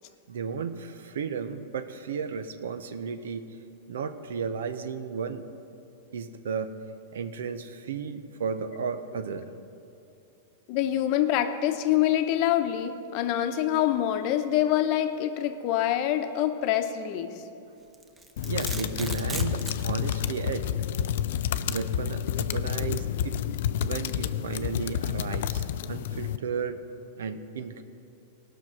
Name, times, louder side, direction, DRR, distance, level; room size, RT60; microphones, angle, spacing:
voice 1, 0.3-3.5 3.9-5.5 6.1-6.7 7.1-9.5 18.5-20.7 21.7-23.4 23.8-26.8 27.2-27.8, right 6 dB, 85° right, 10 dB, 0.7 m, -34 dB
voice 2, 10.7-17.3, left 11 dB, 50° left, 7 dB, 0.8 m, -25 dB
Domestic sounds home sounds, 17.9-19.9, right 2 dB, 15° right, 0.8 m, -36 dB
sound 1, 18.4-26.4, left 10 dB, 70° left, 0.4 m, -29 dB
17.5 x 6.1 x 6.1 m, 2.7 s
hypercardioid pair, 135°, 0 cm